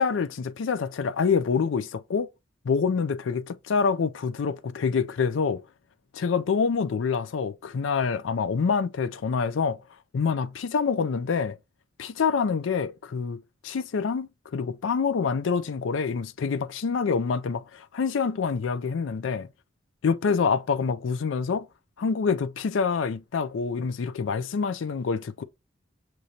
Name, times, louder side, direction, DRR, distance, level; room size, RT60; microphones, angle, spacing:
voice 1, 0.0-2.3 2.6-5.6 6.1-9.8 10.1-11.6 12.0-19.5 20.0-21.7 22.0-25.4, left 5 dB, 70° left, 0.4 m, -26 dB
6.4 x 3.1 x 2.7 m
head